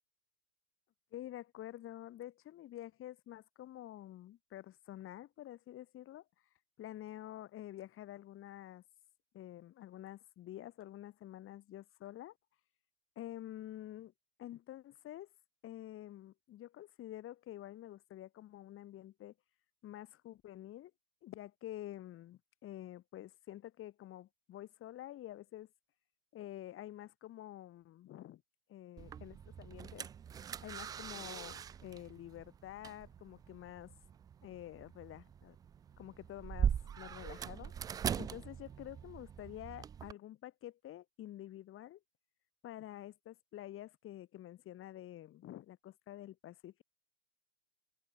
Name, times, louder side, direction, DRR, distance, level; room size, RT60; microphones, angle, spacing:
voice 1, 1.1-6.3 6.8-8.8 9.3-12.4 13.2-14.1 14.4-15.3 15.6-19.3 19.8-20.9 21.2-25.7 26.3-28.4 28.7-30.1 30.6-33.9 34.4-35.6 36.0-37.7 38.2-42.0 42.6-46.8, left 13 dB, 30° left, 5.6 m, -49 dB
sound 1, 29.0-40.1, right 8 dB, 10° right, 0.4 m, -41 dB
hypercardioid pair, 110°, 42 cm